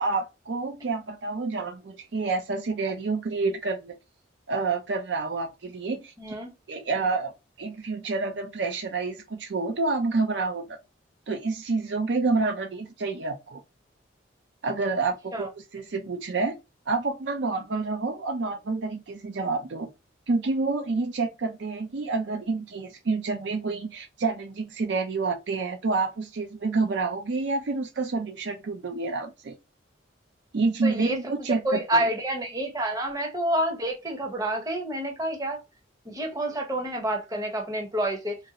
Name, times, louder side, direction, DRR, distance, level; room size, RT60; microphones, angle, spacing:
voice 1, 0.0-3.9 4.5-6.1 6.7-7.3 7.6-10.8 11.3-13.6 14.6-15.5 15.7-16.6 16.9-19.9 20.3-29.5 30.5-32.1, right 3 dB, 60° right, 0.5 m, -28 dB
voice 2, 6.2-6.5 15.3-15.5 30.8-31.3 31.6-35.6 36.1-38.4, right 1 dB, 20° right, 0.7 m, -28 dB
3.0 x 2.6 x 2.7 m
head